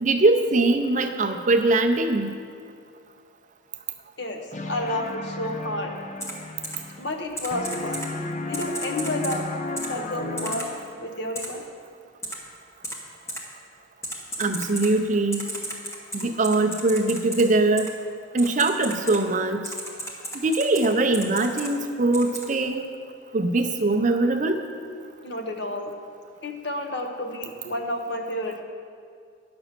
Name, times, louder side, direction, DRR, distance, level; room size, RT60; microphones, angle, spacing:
voice 1, 0.0-2.3 14.4-15.6 16.1-17.9 18.3-19.6 20.3-22.8 23.3-24.6, right 2 dB, 40° right, 5 dB, 0.5 m, -22 dB
sound 1, 4.5-7.3 7.5-11.1, left 3 dB, 35° left, 0.5 m, -34 dB
voice 2, 4.7-5.9 7.0-8.1 8.4-9.4 9.9-10.7 11.0-11.6 25.2-25.9 26.4-28.6, left 1 dB, 55° left, 4 dB, 0.9 m, -30 dB
Typing, 6.2-6.3 6.6-6.8 7.4-8.1 8.5-9.4 9.8-9.9 10.4-10.7 11.3-11.5 12.2-12.3 12.8-13.0 13.3-13.4 14.0-14.9 15.3-17.4 17.8-17.9 18.4-19.2 19.6-20.9 21.1-21.7 22.1-22.4, right 1 dB, 15° left, 1.0 m, -33 dB
9.8 x 6.1 x 6.6 m, 2.2 s
head